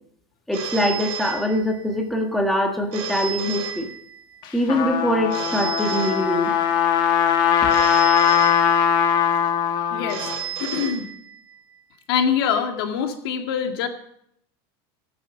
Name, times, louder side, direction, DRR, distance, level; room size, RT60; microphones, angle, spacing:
voice 1, 0.5-3.9 4.5-6.5, left 1 dB, ahead, 2 dB, 1.6 m, -23 dB
Telephone, 0.5-2.0 2.9-4.4 5.3-6.8 7.7-9.2 10.1-11.6, right 9 dB, 50° right, 3.5 m, -33 dB
Trumpet, 4.4-10.4, left 8 dB, 40° left, 1.6 m, -20 dB
voice 2, 9.7-10.3 10.6-11.1 12.1-13.9, left 7 dB, 75° left, 5 dB, 2.1 m, -24 dB
18.5 x 9.0 x 6.3 m, 0.71 s
supercardioid pair, 165°, 13 cm